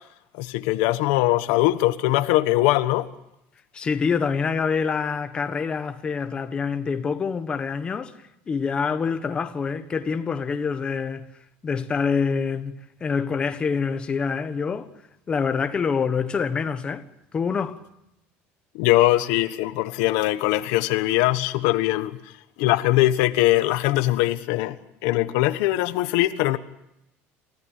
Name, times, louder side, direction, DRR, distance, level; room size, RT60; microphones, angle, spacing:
voice 1, 0.3-3.1 18.7-22.3 22.6-24.8 25.0-26.6, left 16 dB, 90° left, 1.3 m, -21 dB
voice 2, 3.7-11.3 11.6-14.9 15.3-17.0 17.3-17.8, left 5 dB, 20° left, 1.2 m, -26 dB
29.0 x 15.0 x 9.0 m
cardioid pair, 170°, 5 cm